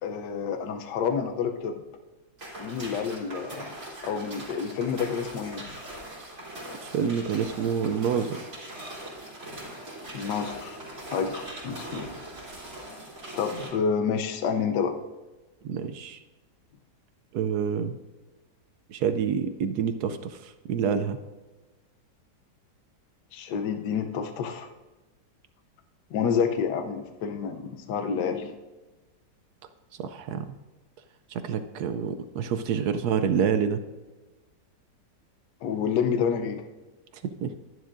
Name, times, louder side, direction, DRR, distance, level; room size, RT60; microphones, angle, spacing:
voice 1, 0.0-1.8 2.6-3.7 4.0-5.6 10.1-10.8 11.1-12.1 13.4-14.9 23.3-24.7 26.1-28.5 35.6-36.6, left 6 dB, 75° left, 7 dB, 1.3 m, -29 dB
sound 1, 2.4-13.7, right 1 dB, 45° right, 3.4 m, -41 dB
voice 2, 6.8-8.5 15.6-16.2 17.3-18.0 18.9-21.2 30.0-30.5 31.3-33.8 37.2-37.5, right 7 dB, 70° right, 9 dB, 1.0 m, -27 dB
11.5 x 11.0 x 2.5 m, 1.2 s
omnidirectional pair, 2.0 m